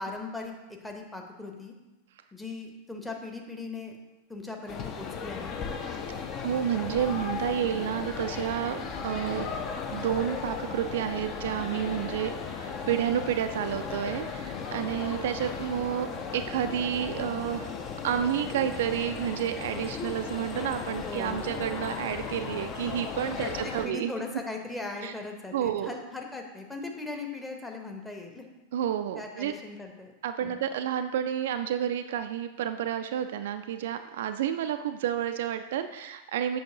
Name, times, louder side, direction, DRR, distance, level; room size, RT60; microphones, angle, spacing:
voice 1, 0.0-1.7 2.3-4.0 4.3-5.5 21.0-21.5 23.4-28.5 29.1-30.1 30.4-30.6, left 3 dB, 5° left, 1 dB, 0.9 m, -39 dB
sound 1, 4.7-23.9, left 6 dB, 35° left, 0.6 m, -36 dB
voice 2, 6.1-9.5 9.9-17.7 18.0-24.1 25.0-25.1 25.5-26.0 28.7-29.5 30.2-36.6, right 10 dB, 55° right, 8 dB, 0.3 m, -30 dB
7.5 x 5.8 x 2.8 m, 1.0 s
figure-of-eight pair, 90°, 0 cm